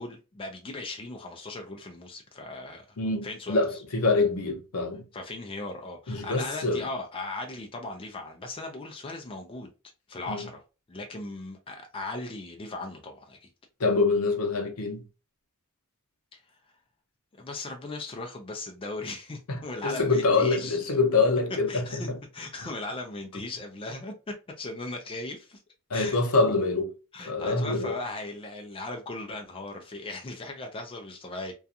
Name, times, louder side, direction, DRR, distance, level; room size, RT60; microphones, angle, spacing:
voice 1, 0.0-3.0 3.2-3.8 5.1-9.7 10.1-10.6 10.9-13.5 16.3-16.6 17.4-20.8 21.7-22.1 22.3-25.6 25.9-26.2 27.1-31.5, left 2 dB, 25° left, 0.4 m, -38 dB
voice 2, 3.0-5.0 6.1-6.9 10.3-10.4 13.8-15.0 19.5-22.2 25.9-26.9 27.2-27.9, left 3 dB, 75° left, 0.7 m, -25 dB
2.4 x 2.3 x 2.7 m
head